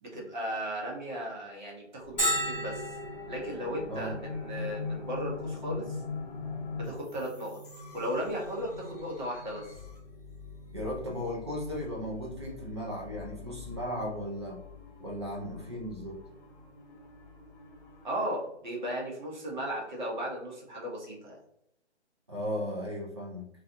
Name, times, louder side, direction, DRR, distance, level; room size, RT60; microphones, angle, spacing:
voice 1, 0.0-3.0 3.3-6.0 6.7-7.6 7.9-9.7 18.0-21.4, equal, 40° right, -2 dB, 0.9 m, -36 dB
sound 1, 2.0-18.2, left 5 dB, 35° left, 0.7 m, -43 dB
Bell, 2.2-17.6, equal, 5° left, 0.8 m, -41 dB
voice 2, 10.7-14.6 15.0-16.2 22.3-23.5, equal, 25° right, -3 dB, 0.4 m, -36 dB
2.4 x 2.3 x 2.6 m, 0.76 s
hypercardioid pair, 150°, 35 cm